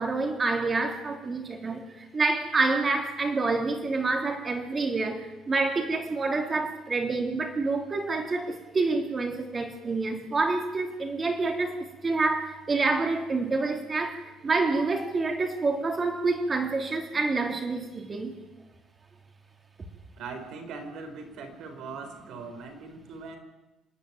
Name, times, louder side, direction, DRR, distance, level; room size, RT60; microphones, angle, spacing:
voice 1, 0.0-18.4, right 3 dB, 25° right, 4 dB, 3.0 m, -27 dB
voice 2, 20.2-23.4, right 4 dB, 60° right, 6 dB, 4.3 m, -40 dB
27.0 x 10.5 x 9.3 m, 1.0 s
cardioid pair, 145°, 0 cm